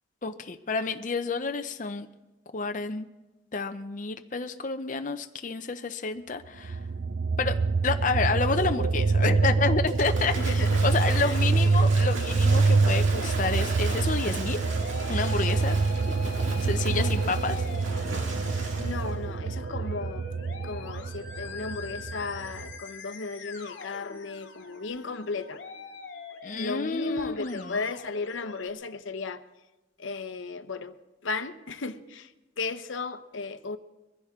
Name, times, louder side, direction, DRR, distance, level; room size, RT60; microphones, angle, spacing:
voice 1, 0.2-2.1 2.5-3.1 3.5-6.8 7.4-7.6 7.8-14.6 15.1-15.8 16.6-17.6 26.4-27.8, left 4 dB, 40° left, 0.6 m, -29 dB
sound 1, 6.6-22.8, right 4 dB, 55° right, 0.4 m, -26 dB
Waves surf / Splash splatter, 9.9-19.1, right 2 dB, 90° right, 2.2 m, -38 dB
voice 2, 10.4-10.9 11.2-11.4 11.6-11.9 16.9-17.3 18.7-20.3 20.6-25.6 26.5-29.4 30.0-31.0 31.2-33.8, left 4 dB, 85° left, 0.8 m, -35 dB
Musical instrument, 10.7-28.7, left 4 dB, 65° left, 2.0 m, -45 dB
23.0 x 15.5 x 3.6 m
head